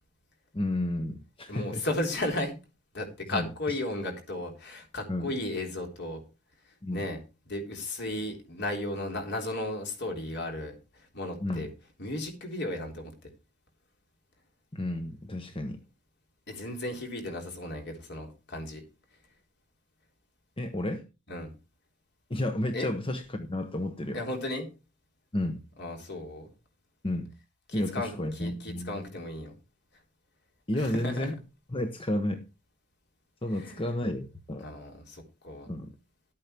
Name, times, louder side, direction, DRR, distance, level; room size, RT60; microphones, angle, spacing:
voice 1, 0.5-1.8 3.3-3.8 5.1-5.3 6.8-7.1 11.4-11.7 14.7-15.8 20.6-21.0 22.3-24.2 25.3-25.6 27.0-27.3 27.7-29.0 30.7-31.4 31.7-32.4 33.4-34.7 35.7-35.9, left 1 dB, 25° left, 1.0 m, -32 dB
voice 2, 1.5-2.5 2.9-6.2 6.9-7.2 7.5-11.7 12.0-13.3 16.5-18.8 21.3-21.5 22.7-22.9 24.1-24.7 25.8-26.5 27.7-29.5 30.7-31.3 33.5-33.9 34.6-35.7, left 1 dB, 55° left, 3.6 m, -35 dB
12.0 x 8.7 x 4.4 m
head